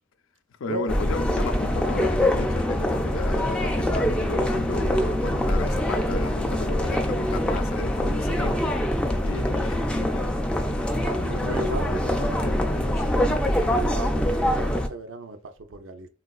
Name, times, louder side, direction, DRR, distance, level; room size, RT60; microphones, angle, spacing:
voice 1, 0.6-10.4 11.2-13.7, left 4 dB, 80° left, 0.4 m, -34 dB
sound 1, 0.9-14.9, left 1 dB, 5° left, 0.4 m, -24 dB
voice 2, 11.0-12.2 13.7-16.1, right 2 dB, 70° right, 0.5 m, -35 dB
3.8 x 2.3 x 2.3 m
head